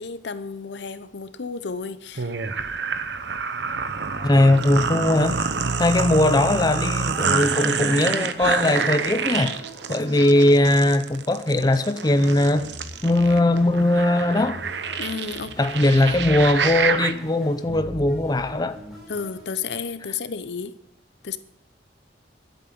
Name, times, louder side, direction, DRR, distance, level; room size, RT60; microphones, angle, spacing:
voice 1, 0.0-2.3 10.1-10.2 15.0-15.6 19.1-20.7 21.2-21.4, left 5 dB, 85° left, 0.8 m, -32 dB
sound 1, 2.2-17.1, right 5 dB, 90° right, 0.9 m, -27 dB
sound 2, 3.8-12.0 12.5-19.9, equal, ahead, 5.1 m, -42 dB
voice 2, 4.2-5.4 5.8-9.6 9.9-12.7 13.0-14.6 15.6-18.8, left 1 dB, 25° left, 0.6 m, -20 dB
11.5 x 8.1 x 7.5 m
head